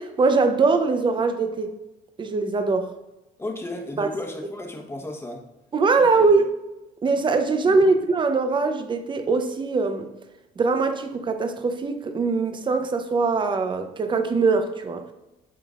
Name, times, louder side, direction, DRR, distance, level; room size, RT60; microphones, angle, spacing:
voice 1, 0.0-1.7 2.2-2.9 4.0-4.1 5.7-6.5 7.0-10.1 10.6-15.0, right 4 dB, 30° right, 7 dB, 0.7 m, -22 dB
voice 2, 3.4-5.4 6.0-6.1 7.6-7.9, left 2 dB, 15° left, 2 dB, 1.2 m, -34 dB
9.0 x 5.0 x 2.5 m, 0.97 s
cardioid pair, 110°, 17 cm